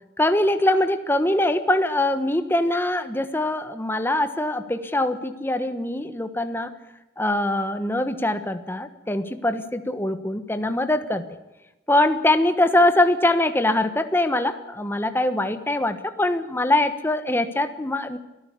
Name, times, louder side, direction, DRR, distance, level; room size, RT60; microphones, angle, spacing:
voice 1, 0.2-6.7 7.2-11.2 11.9-18.2, left 1 dB, 10° left, 9 dB, 1.3 m, -23 dB
24.5 x 14.0 x 8.4 m, 1.0 s
head